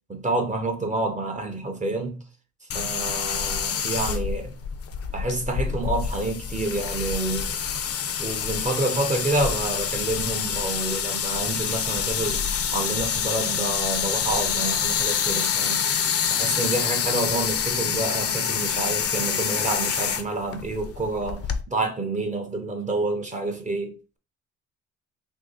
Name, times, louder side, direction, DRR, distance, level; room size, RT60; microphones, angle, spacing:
voice 1, 0.1-2.2 2.6-4.6 5.1-7.6 8.2-15.8 16.3-24.2, right 2 dB, 25° right, 0.6 m, -28 dB
sound 1, 2.7-21.6, left 7 dB, 50° left, 0.5 m, -27 dB
2.9 x 2.7 x 3.8 m
cardioid pair, 90°, 30 cm